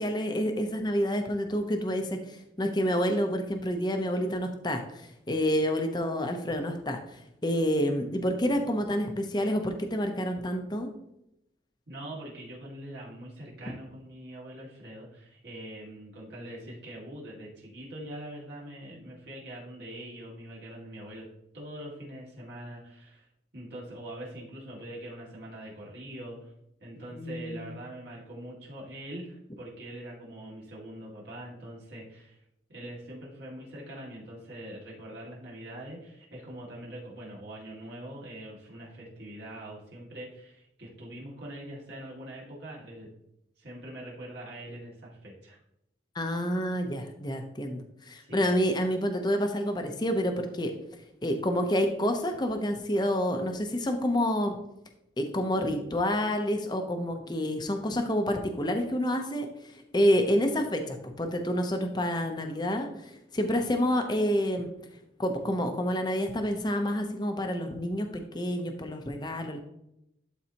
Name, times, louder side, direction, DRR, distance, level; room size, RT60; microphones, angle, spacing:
voice 1, 0.0-10.9 27.2-27.7 46.1-50.7 51.2-54.6 55.2-64.7 65.2-69.6, equal, 25° left, 5 dB, 0.7 m, -28 dB
voice 2, 11.9-21.3 21.5-23.3 23.5-26.5 26.8-32.4 32.7-43.1 43.6-45.6 48.2-48.5 60.1-60.4, right 1 dB, 60° right, -5 dB, 2.2 m, -43 dB
11.5 x 4.1 x 2.9 m, 0.81 s
head